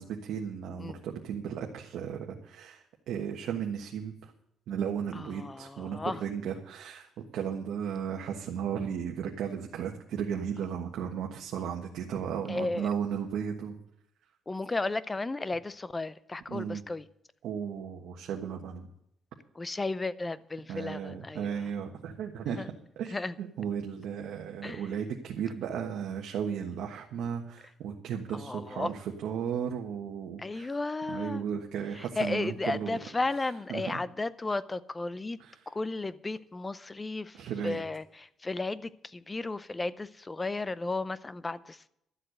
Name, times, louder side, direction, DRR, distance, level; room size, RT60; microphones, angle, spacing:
voice 1, 0.0-4.3 4.7-7.1 7.3-13.8 16.5-16.8 17.4-18.9 20.7-22.6 23.0-30.7 31.1-33.0 33.7-34.0 35.4-35.6 37.3-37.8, right 8 dB, 75° right, 1.4 m, -35 dB
voice 2, 5.2-6.2 12.5-12.9 14.5-17.1 19.6-21.6 22.5-22.7 23.1-23.3 24.6-24.8 28.3-28.9 30.4-31.4 32.0-35.4 35.7-37.4 37.6-41.9, left 3 dB, 15° left, 0.5 m, -34 dB
12.5 x 7.7 x 8.0 m
cardioid pair, 130°, 0 cm